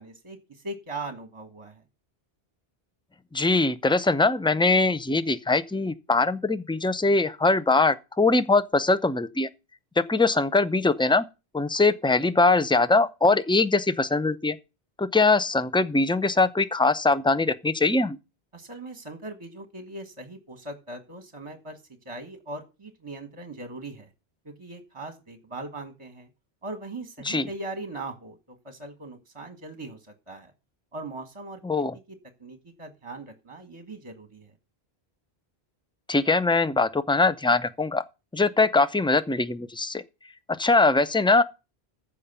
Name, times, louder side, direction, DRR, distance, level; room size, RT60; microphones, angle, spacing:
voice 1, 0.0-1.8 18.5-24.1 24.4-26.3 26.6-30.5 30.9-31.6 32.4-34.5, right 2 dB, 30° right, 1.5 m, -40 dB
voice 2, 3.3-9.5 10.0-11.2 11.5-14.6 15.0-18.2 27.2-27.5 31.6-31.9 36.1-38.0 38.3-40.0 40.6-41.4, left 3 dB, 5° left, 0.5 m, -22 dB
14.5 x 5.2 x 6.8 m
omnidirectional pair, 1.0 m